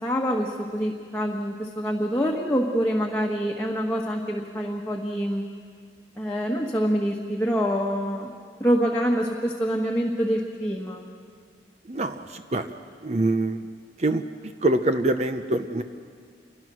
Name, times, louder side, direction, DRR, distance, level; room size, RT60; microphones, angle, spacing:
voice 1, 0.0-5.5 6.2-8.3 8.6-11.1, equal, 10° left, -2 dB, 1.5 m, -26 dB
voice 2, 11.8-12.7 13.0-13.7 14.0-15.8, right 2 dB, 40° right, 8 dB, 0.8 m, -25 dB
28.5 x 23.0 x 6.3 m, 2.1 s
head